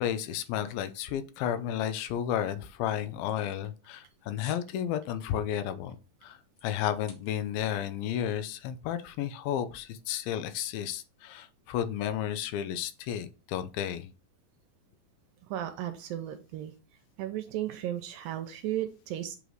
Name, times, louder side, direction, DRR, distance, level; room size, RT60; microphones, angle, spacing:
voice 1, 0.0-14.1, left 10 dB, 90° left, 2.5 m, -32 dB
sound 1, 3.1-4.0 4.4-4.7 5.1-5.3 5.8-7.6 7.8-7.9, left 6 dB, 60° left, 2.4 m, -52 dB
voice 2, 15.5-16.7 17.2-19.4, right 12 dB, 80° right, 2.3 m, -35 dB
8.1 x 3.1 x 3.9 m
omnidirectional pair, 4.2 m